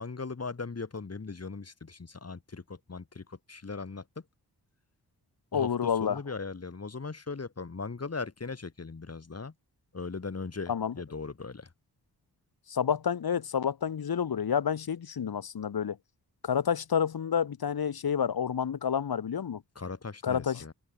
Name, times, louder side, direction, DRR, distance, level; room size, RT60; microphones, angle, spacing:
voice 1, 0.0-4.0 5.5-9.5 9.9-11.7 19.7-20.7, left 4 dB, 40° left, 4.6 m, -39 dB
voice 2, 5.5-6.2 10.7-10.9 12.7-16.0 16.4-19.6 20.2-20.6, left 7 dB, 70° left, 2.1 m, -29 dB
cardioid pair, 80°, 38 cm